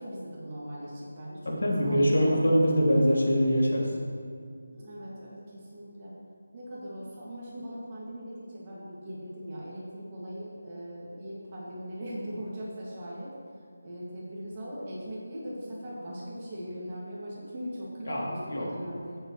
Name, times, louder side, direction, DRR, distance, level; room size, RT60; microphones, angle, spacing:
voice 1, 0.0-2.3 4.7-6.1 6.5-13.3 13.8-19.2, equal, 25° right, -7 dB, 2.3 m, -40 dB
voice 2, 1.4-3.9 18.1-18.2 18.5-18.7, equal, 70° left, -3 dB, 2.6 m, -23 dB
15.5 x 7.4 x 3.3 m, 2.3 s
figure-of-eight pair, 175°, 0 cm